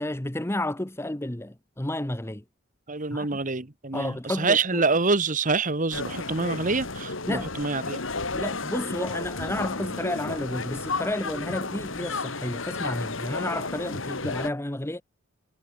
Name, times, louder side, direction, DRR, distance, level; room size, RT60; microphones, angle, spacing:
voice 1, 0.0-2.4 3.1-3.4 3.9-4.8 7.3-7.5 8.3-15.0, left 1 dB, 15° left, 1.0 m, -31 dB
voice 2, 2.9-8.0, right 3 dB, 40° right, 1.7 m, -26 dB
sound 1, 5.9-14.5, left 3 dB, 75° left, 3.2 m, -32 dB
head